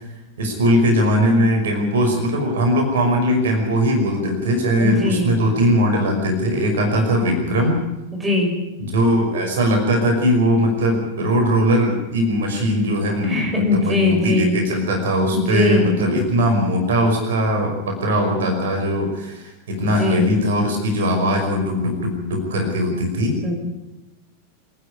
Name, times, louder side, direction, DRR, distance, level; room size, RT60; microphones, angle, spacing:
voice 1, 0.4-7.8 8.8-23.4, equal, 60° right, 3 dB, 5.5 m, -20 dB
voice 2, 4.8-5.3 8.1-8.5 13.3-14.5 15.3-15.9 20.0-20.3 23.4-23.7, left 2 dB, 10° right, 1 dB, 5.6 m, -21 dB
27.0 x 10.5 x 9.9 m, 1.0 s
figure-of-eight pair, 90°, 0 cm